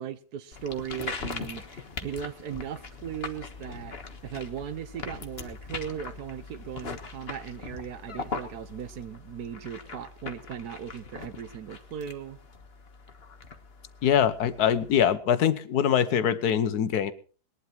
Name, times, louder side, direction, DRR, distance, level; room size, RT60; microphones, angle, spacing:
voice 1, 0.0-4.0 4.2-12.4, right 9 dB, 85° right, 1.5 m, -38 dB
sound 1, 0.5-15.1, left 4 dB, 40° left, 1.6 m, -41 dB
voice 2, 14.0-17.1, left 9 dB, 85° left, 1.5 m, -23 dB
20.0 x 11.5 x 4.5 m
omnidirectional pair, 1.6 m